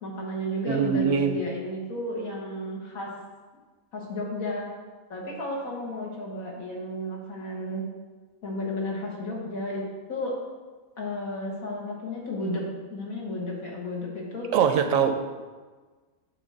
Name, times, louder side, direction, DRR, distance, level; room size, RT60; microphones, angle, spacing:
voice 1, 0.0-3.1 3.9-4.7 5.1-7.8 8.4-9.8 10.1-10.3 11.0-12.6 12.9-14.5, left 1 dB, 75° left, -2 dB, 2.0 m, -33 dB
voice 2, 0.7-1.4 14.5-15.1, right 7 dB, 70° right, 7 dB, 1.0 m, -22 dB
7.9 x 3.5 x 6.5 m, 1.4 s
omnidirectional pair, 1.5 m